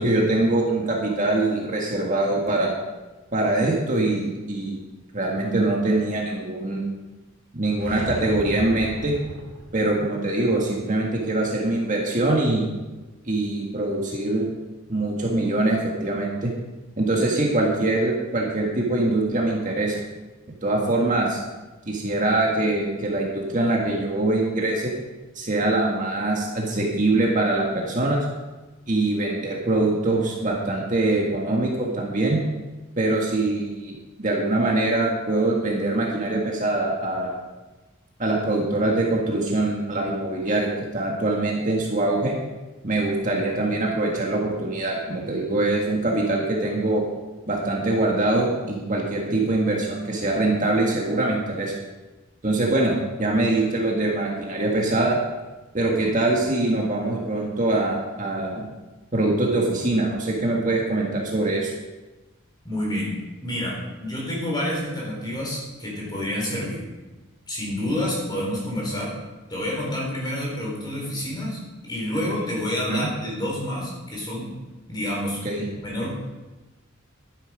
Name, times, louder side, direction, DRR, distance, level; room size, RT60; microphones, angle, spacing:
voice 1, 0.0-2.7 3.3-4.8 5.1-6.8 7.5-9.1 9.7-12.7 13.2-14.5 14.9-16.5 17.0-20.0 20.6-21.4 21.9-24.9 25.4-28.2 28.9-32.4 33.0-37.4 38.2-42.3 42.8-47.0 47.4-51.7 52.4-52.9 53.2-55.2 55.7-58.7 59.1-61.7 72.9-73.1 75.4-75.7, right 2 dB, 40° right, -2 dB, 1.9 m, -23 dB
sound 1, 7.7-9.9, equal, 75° right, 2.1 m, -34 dB
voice 2, 62.6-66.8 67.5-69.1 69.5-74.5 74.9-75.4 75.7-76.1, left 1 dB, 20° left, -3 dB, 4.2 m, -28 dB
11.5 x 10.0 x 5.1 m, 1.1 s
head